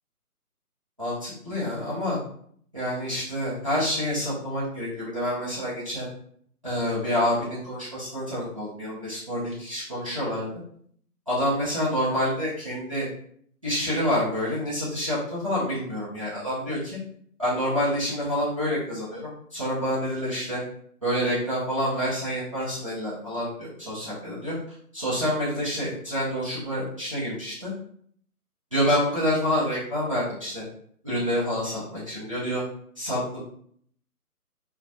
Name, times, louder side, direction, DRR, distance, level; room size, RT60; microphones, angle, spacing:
voice 1, 1.0-2.2 2.7-6.1 6.6-10.5 11.3-13.1 13.6-17.0 17.4-20.6 21.0-24.5 24.9-27.7 28.7-30.6 31.0-32.6 33.0-33.4, equal, 20° right, -11 dB, 0.6 m, -27 dB
2.2 x 2.1 x 2.6 m, 0.62 s
figure-of-eight pair, 155°, 46 cm